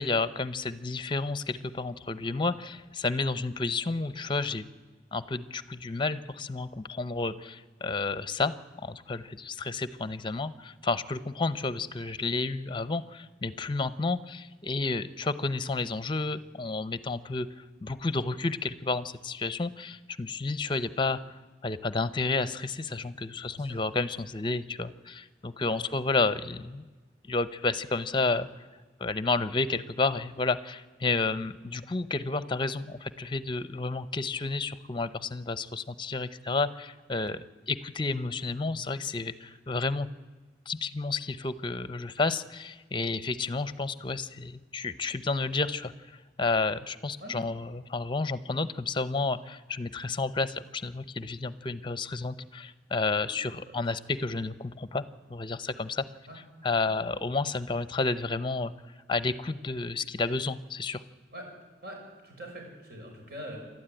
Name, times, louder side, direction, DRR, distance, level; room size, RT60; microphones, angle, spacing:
voice 1, 0.0-4.7 5.1-21.2 21.6-26.8 27.3-28.5 29.0-40.1 40.7-55.0 55.3-56.0 56.6-58.7 59.1-61.0, left 3 dB, 30° left, 14 dB, 0.8 m, -31 dB
voice 2, 61.8-63.6, equal, 60° right, 1 dB, 6.3 m, -44 dB
28.0 x 12.5 x 9.1 m, 1.3 s
head